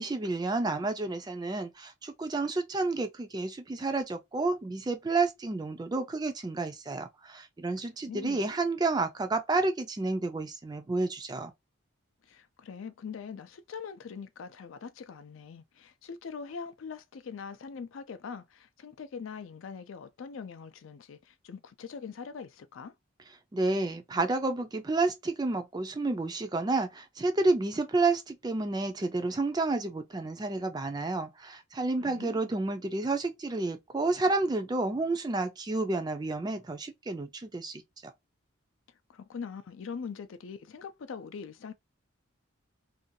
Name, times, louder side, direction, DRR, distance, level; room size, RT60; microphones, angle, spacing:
voice 1, 0.0-11.5 23.5-37.8, right 3 dB, 20° right, 0.3 m, -30 dB
voice 2, 8.0-8.5 12.3-22.9 32.0-32.4 39.1-41.7, left 6 dB, 70° left, 0.4 m, -42 dB
2.5 x 2.3 x 2.6 m
head